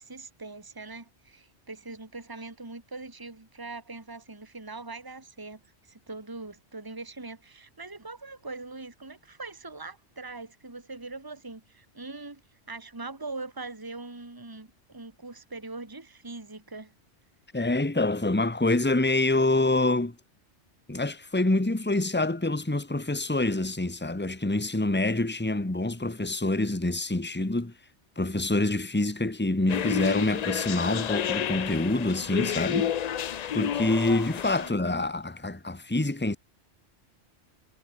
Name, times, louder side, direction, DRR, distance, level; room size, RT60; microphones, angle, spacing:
voice 1, 0.0-12.4 12.7-16.9 34.6-35.1, right 3 dB, 20° right, 2.0 m, -42 dB
voice 2, 17.5-20.2 20.9-27.7 28.2-32.9 33.5-36.4, left 2 dB, 10° left, 1.4 m, -26 dB
sound 1, 29.7-34.7, left 9 dB, 55° left, 0.4 m, -30 dB
omnidirectional pair, 1.2 m